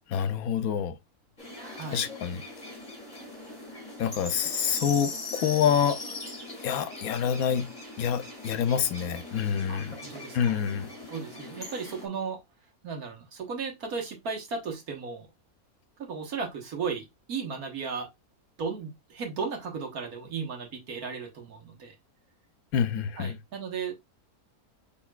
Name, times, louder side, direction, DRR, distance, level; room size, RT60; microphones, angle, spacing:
voice 1, 0.1-0.9 1.9-2.4 4.0-6.0 6.6-7.7 8.0-10.0 10.3-10.9 22.7-23.4, left 8 dB, 80° left, 1.1 m, -27 dB
sound 1, 1.4-12.1, left 2 dB, 30° left, 1.9 m, -40 dB
voice 2, 1.7-2.1 9.7-10.6 11.1-12.4 12.8-15.3 16.0-18.1 18.6-21.9 23.2-23.9, right 5 dB, 80° right, 1.8 m, -35 dB
6.2 x 3.5 x 2.3 m
omnidirectional pair, 1.5 m